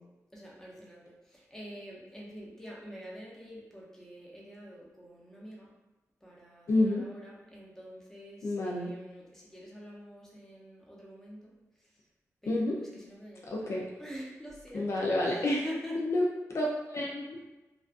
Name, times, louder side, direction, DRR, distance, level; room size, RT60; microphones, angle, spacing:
voice 1, 0.3-5.7 6.2-12.0 12.4-16.0, equal, 5° left, -5 dB, 0.6 m, -46 dB
voice 2, 6.7-7.0 8.4-8.9 12.5-12.8 13.5-13.9 14.7-15.6 16.0-17.4, left 1 dB, 55° left, -2 dB, 0.4 m, -29 dB
2.4 x 2.3 x 2.4 m, 1.1 s
wide cardioid pair, 115°, 6 cm